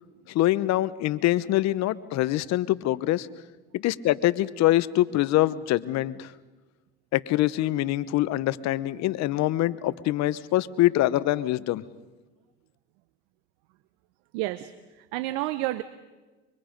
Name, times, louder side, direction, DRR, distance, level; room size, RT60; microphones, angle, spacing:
voice 1, 0.3-3.3 3.7-6.3 7.1-11.8, left 15 dB, 60° left, 17 dB, 0.9 m, -24 dB
voice 2, 14.3-14.7 15.0-15.8, right 17 dB, 75° right, 14 dB, 0.8 m, -29 dB
24.5 x 24.5 x 5.2 m, 1.2 s
supercardioid pair, 90°, 31 cm